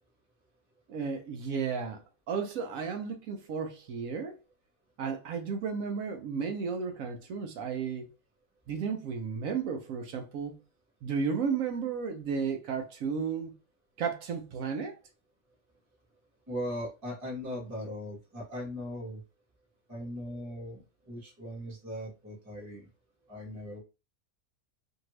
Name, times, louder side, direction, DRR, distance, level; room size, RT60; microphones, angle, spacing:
voice 1, 0.9-4.4 5.0-8.1 8.7-10.6 11.0-13.5 14.0-15.0, right 6 dB, 70° right, 0.9 m, -33 dB
voice 2, 16.5-19.2 19.9-22.9 23.3-23.8, equal, 10° right, 1.1 m, -39 dB
2.7 x 2.6 x 3.0 m
omnidirectional pair, 1.6 m